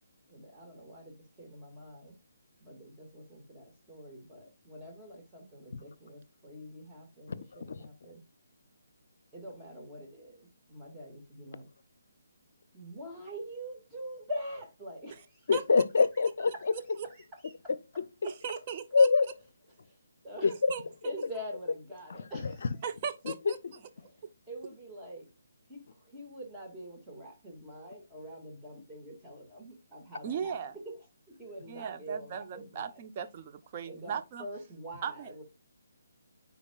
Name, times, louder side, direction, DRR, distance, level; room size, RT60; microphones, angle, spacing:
voice 1, 0.3-2.1 2.6-8.2 9.3-11.7 12.7-15.5 16.5-16.6 17.0-17.2 17.4-17.5 20.2-20.5 21.0-22.7 24.0-24.1 24.5-25.3 25.7-31.0 31.3-33.0 33.8-35.4, equal, 10° right, 1.9 m, -45 dB
voice 2, 15.5-16.8 17.7-18.3 18.9-19.3 20.4-20.7 22.1-22.5 23.2-23.8, left 4 dB, 60° left, 0.5 m, -26 dB
voice 3, 18.2-19.1 20.7-21.1 22.8-23.6 30.2-30.8 31.7-34.5 35.0-35.3, right 7 dB, 35° right, 0.7 m, -37 dB
9.7 x 4.2 x 2.4 m
figure-of-eight pair, 150°, 0 cm